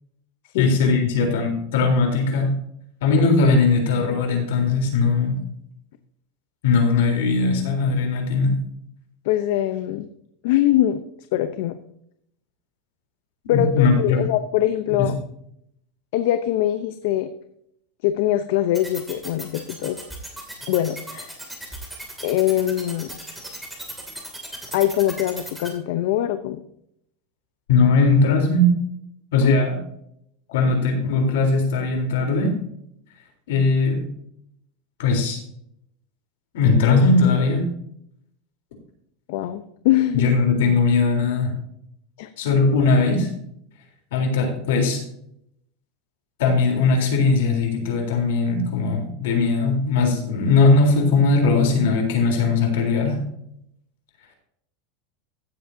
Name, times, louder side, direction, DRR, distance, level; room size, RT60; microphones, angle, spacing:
voice 1, 0.6-2.6 3.0-5.4 6.6-8.5 13.4-14.2 14.9-15.0 27.7-28.7 29.3-29.8 30.5-32.6 33.5-34.1 35.0-35.4 36.5-37.7 40.1-41.5 42.4-43.3 44.1-45.0 46.4-53.2, left 3 dB, 80° left, 2 dB, 3.6 m, -19 dB
voice 2, 9.2-10.1 10.4-11.0 11.3-11.8 13.5-15.2 16.1-17.3 18.0-20.0 20.7-21.3 22.2-23.1 24.7-26.6 29.4-29.5 39.3-40.3 42.2-42.3, left 13 dB, 65° left, 10 dB, 0.7 m, -22 dB
sound 1, 18.7-25.7, right 1 dB, 5° right, 2.6 m, -36 dB
15.5 x 7.8 x 2.7 m, 0.72 s
supercardioid pair, 150°, 0 cm